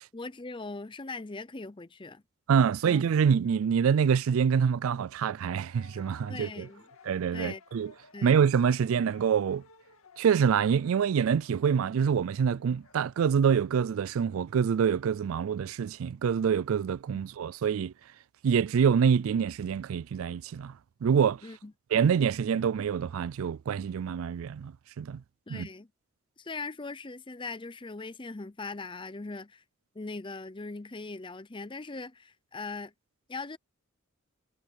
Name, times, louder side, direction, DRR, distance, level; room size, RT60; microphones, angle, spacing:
voice 1, 0.1-2.2 2.8-3.0 6.3-6.8 7.3-7.6 8.1-8.3 21.4-21.7 25.5-25.9 26.4-29.6 29.9-32.9 33.3-33.6, left 3 dB, 25° left, 0.6 m, -40 dB
voice 2, 2.5-6.7 7.1-7.9 8.2-9.6 10.2-17.9 18.4-20.8 21.0-21.4 21.9-25.2 25.5-25.7, right 7 dB, 80° right, 0.4 m, -26 dB
sound 1, 5.6-13.3, left 4 dB, 80° left, 2.2 m, -57 dB
head